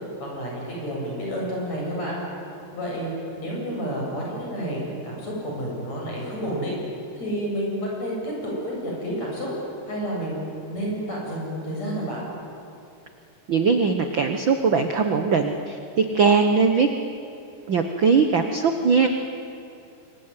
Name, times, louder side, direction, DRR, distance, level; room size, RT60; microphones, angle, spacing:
voice 1, 0.3-2.2 2.7-3.1 3.4-6.8 7.2-9.5 9.9-10.4 10.7-12.3, equal, 50° left, -3 dB, 9.3 m, -30 dB
voice 2, 13.5-16.9 17.7-19.1, right 5 dB, 65° right, 6 dB, 1.2 m, -20 dB
26.5 x 22.5 x 9.7 m, 2.7 s
omnidirectional pair, 4.0 m